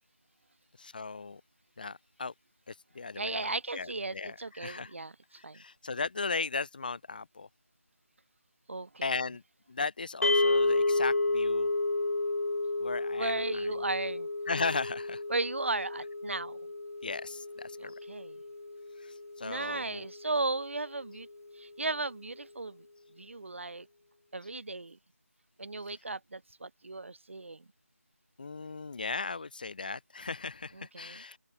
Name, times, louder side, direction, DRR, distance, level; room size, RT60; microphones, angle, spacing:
voice 1, 0.8-1.4 1.8-2.3 2.7-4.9 5.5-7.5 9.0-9.4 9.7-11.7 12.8-13.3 14.5-15.2 17.0-17.9 19.4-20.1 28.4-31.4, left 4 dB, 35° left, 1.7 m, -36 dB
voice 2, 3.1-5.6 8.7-9.3 13.2-14.3 15.3-16.6 17.8-18.4 19.4-21.3 21.6-22.9 23.1-23.9 24.3-25.0 25.6-27.6 30.7-31.2, right 3 dB, 50° right, 3.0 m, -36 dB
sound 1, 10.2-20.5, left 2 dB, 60° left, 1.4 m, -31 dB
open air
figure-of-eight pair, 170°, 9 cm